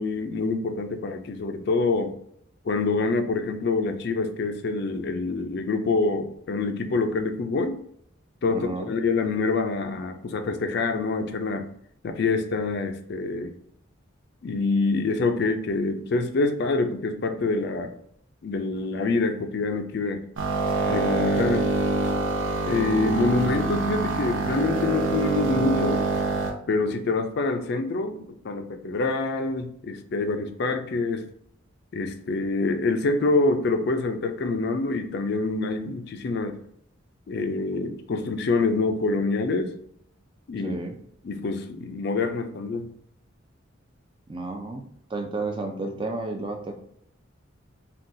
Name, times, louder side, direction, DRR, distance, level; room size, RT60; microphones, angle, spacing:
voice 1, 0.0-2.1 2.7-7.8 8.4-11.6 12.0-13.5 14.4-17.9 18.4-20.2 20.9-21.7 22.7-26.0 26.7-31.2 31.9-36.6 37.3-39.7 40.5-40.8 41.2-42.9, left 3 dB, 55° left, 7 dB, 0.4 m, -26 dB
voice 2, 8.5-8.9 40.6-41.0 44.3-44.8 45.1-46.7, right 2 dB, 25° right, 4 dB, 0.4 m, -32 dB
sound 1, 20.4-26.5, right 3 dB, 70° right, 0.6 m, -25 dB
3.7 x 2.3 x 2.6 m, 0.69 s
head